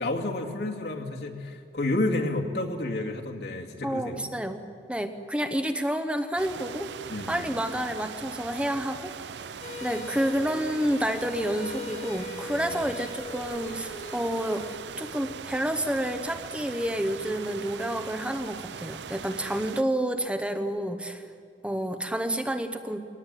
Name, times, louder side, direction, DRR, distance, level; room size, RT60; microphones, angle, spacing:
voice 1, 0.0-4.3 7.1-7.5 12.5-12.8, left 2 dB, 75° left, 0 dB, 2.4 m, -30 dB
voice 2, 3.8-6.9 7.3-9.1 9.8-14.7 15.0-21.2 21.6-23.0, right 1 dB, 5° right, 7 dB, 0.9 m, -29 dB
sound 1, 6.4-19.8, right 6 dB, 90° right, 0.6 m, -40 dB
sound 2, 9.6-14.8, left 3 dB, 40° left, 1.7 m, -41 dB
23.0 x 18.5 x 9.1 m, 2.3 s
head